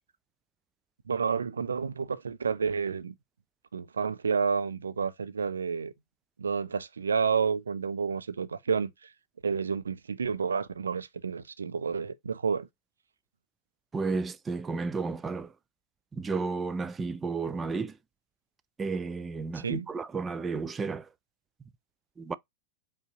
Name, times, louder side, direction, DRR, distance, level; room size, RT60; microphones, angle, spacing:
voice 1, 1.1-3.1 3.7-5.9 6.4-8.9 9.4-12.7 19.5-19.9, right 5 dB, 70° right, 0.6 m, -30 dB
voice 2, 13.9-15.5 16.1-18.0 18.8-21.1 22.2-22.3, right 4 dB, 15° right, 0.4 m, -32 dB
5.3 x 3.7 x 2.7 m
figure-of-eight pair, 90°, 0 cm